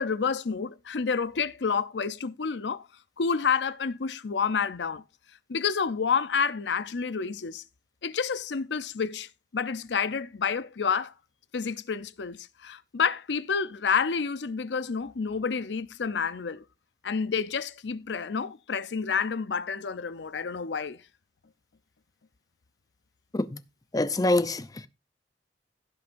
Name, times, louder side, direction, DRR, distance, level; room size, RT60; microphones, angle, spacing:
voice 1, 0.0-2.8 3.2-5.0 5.5-7.6 8.0-11.1 11.5-16.6 17.0-21.0, left 6 dB, 85° left, 0.6 m, -29 dB
voice 2, 23.9-24.9, left 2 dB, 20° left, 0.6 m, -25 dB
16.0 x 6.5 x 2.6 m
head